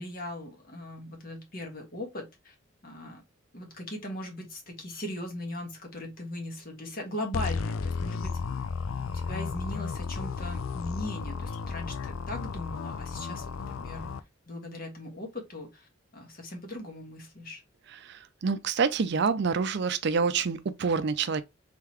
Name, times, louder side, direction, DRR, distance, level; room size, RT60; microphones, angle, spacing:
voice 1, 0.0-2.5 2.8-3.2 3.5-8.4 9.1-14.1 14.5-17.6, left 1 dB, 45° left, 1.5 m, -39 dB
sound 1, 7.3-14.2, left 5 dB, 85° left, 0.4 m, -33 dB
voice 2, 18.0-21.4, right 5 dB, 60° right, 0.5 m, -27 dB
3.8 x 3.7 x 2.9 m
head